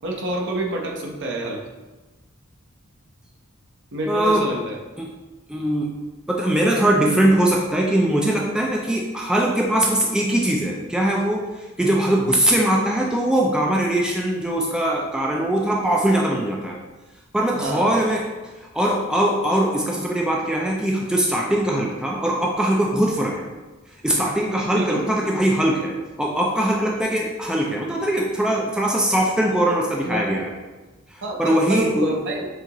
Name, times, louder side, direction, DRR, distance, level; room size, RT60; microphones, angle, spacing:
voice 1, 0.0-1.6 3.9-4.8 17.5-18.0 24.7-25.0 30.0-30.3 31.2-32.5, right 1 dB, 60° right, -1 dB, 0.8 m, -27 dB
voice 2, 4.1-4.4 5.0-5.1 5.5-5.9 6.3-16.8 17.3-18.2 18.7-23.5 24.0-30.5 31.1-32.1, right 1 dB, 5° right, -2 dB, 0.4 m, -21 dB
6.5 x 2.5 x 2.9 m, 1.2 s
head